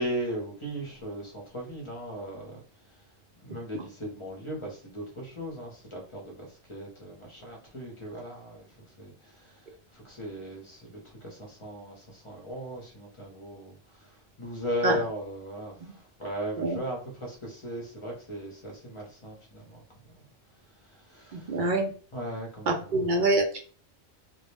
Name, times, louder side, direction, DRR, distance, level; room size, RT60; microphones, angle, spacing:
voice 1, 0.0-3.0 3.4-20.2 20.8-21.6 22.1-23.4, equal, 30° left, -1 dB, 0.7 m, -38 dB
voice 2, 21.3-21.9 22.7-23.6, right 2 dB, 55° right, 2 dB, 0.6 m, -25 dB
2.2 x 2.1 x 3.1 m, 0.40 s
omnidirectional pair, 1.2 m